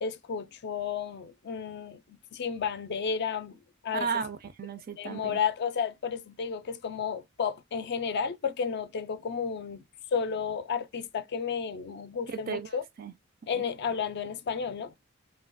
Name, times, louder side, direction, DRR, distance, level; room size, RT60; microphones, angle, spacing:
voice 1, 0.0-4.2 5.0-9.8 10.1-12.8 13.5-14.9, left 6 dB, 50° left, 0.4 m, -32 dB
voice 2, 3.9-5.4 12.3-13.1 13.5-13.7, right 6 dB, 45° right, 0.4 m, -35 dB
3.2 x 2.3 x 2.6 m
head